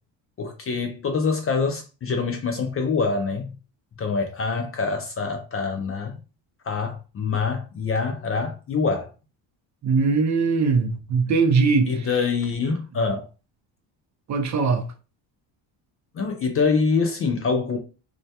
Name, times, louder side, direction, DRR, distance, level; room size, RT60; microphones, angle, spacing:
voice 1, 0.4-3.6 4.0-6.2 6.6-9.1 11.9-13.3 16.1-17.8, left 4 dB, 30° left, 0.4 m, -25 dB
voice 2, 9.8-11.9 14.3-14.8, right 4 dB, 40° right, 0.5 m, -20 dB
2.1 x 2.1 x 2.7 m
supercardioid pair, 85°, 47 cm